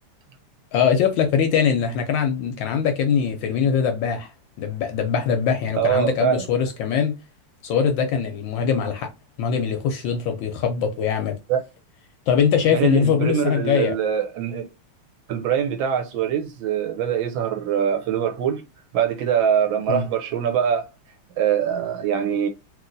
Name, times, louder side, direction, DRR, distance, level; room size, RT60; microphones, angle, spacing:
voice 1, 0.7-4.3 4.6-7.1 7.6-9.1 9.4-11.4 12.3-13.9 19.9-20.1, left 7 dB, 75° left, 1.1 m, -22 dB
voice 2, 5.8-6.4 11.5-11.6 12.7-14.7 15.3-18.6 18.9-20.9 21.4-22.5, right 8 dB, 75° right, 1.2 m, -23 dB
3.0 x 3.0 x 2.5 m
omnidirectional pair, 2.4 m